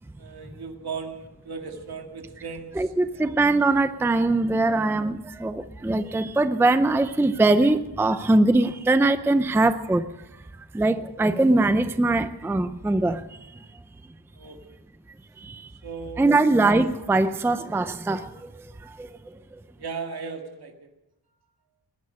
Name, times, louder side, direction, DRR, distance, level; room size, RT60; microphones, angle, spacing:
voice 1, 0.2-2.7 3.1-3.3 14.3-14.6 15.8-16.5 19.8-20.9, right 5 dB, 70° right, 2.1 m, -36 dB
voice 2, 2.7-10.0 10.7-13.2 16.2-18.2, right 2 dB, 5° right, 0.5 m, -21 dB
20.0 x 11.0 x 6.4 m
wide cardioid pair, 165°, 40 cm